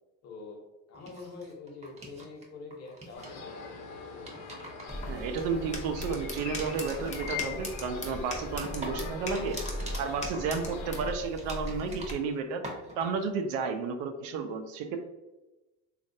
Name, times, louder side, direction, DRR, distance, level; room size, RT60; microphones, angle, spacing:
voice 1, 0.2-0.6 0.9-4.4, left 3 dB, 45° left, 0 dB, 1.0 m, -45 dB
sound 1, 0.9-2.5 2.7-3.4 4.0-5.9 6.3-12.4 12.6-13.2, right 2 dB, 20° right, 0.7 m, -45 dB
sound 2, 3.1-11.1, left 5 dB, 75° left, 0.9 m, -42 dB
sound 3, 4.9-12.1, left 1 dB, 20° left, 0.6 m, -39 dB
voice 2, 5.1-9.6 10.0-12.6 13.0-15.0, right 5 dB, 80° right, 6 dB, 0.6 m, -32 dB
3.1 x 2.5 x 2.7 m, 1.0 s
supercardioid pair, 105°, 37 cm